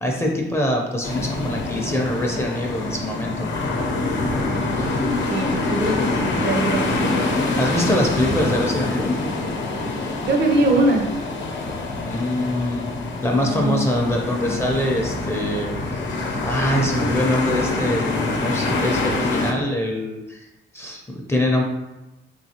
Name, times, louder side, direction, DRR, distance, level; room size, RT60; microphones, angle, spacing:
voice 1, 0.0-3.5 7.6-9.2 12.0-12.8 13.2-16.0 16.4-20.5 20.7-21.6, left 1 dB, 15° left, -1 dB, 0.6 m, -24 dB
sound 1, 1.0-19.5, left 2 dB, 65° left, 0.7 m, -25 dB
voice 2, 4.5-5.0 5.3-7.1 10.3-11.1 13.3-13.8, right 2 dB, 60° right, 2 dB, 0.8 m, -22 dB
3.9 x 2.7 x 2.8 m, 0.98 s
cardioid pair, 90°, 20 cm